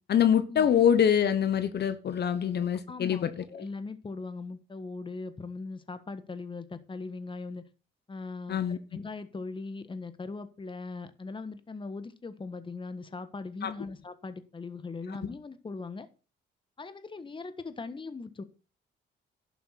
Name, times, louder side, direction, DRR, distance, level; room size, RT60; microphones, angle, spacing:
voice 1, 0.1-3.4 8.5-8.8 13.6-13.7, left 8 dB, 55° left, 1.2 m, -25 dB
voice 2, 2.9-7.7 8.1-16.1 16.8-18.4, left 3 dB, 25° left, 1.4 m, -40 dB
11.5 x 7.0 x 5.9 m
cardioid pair, 90°, 20 cm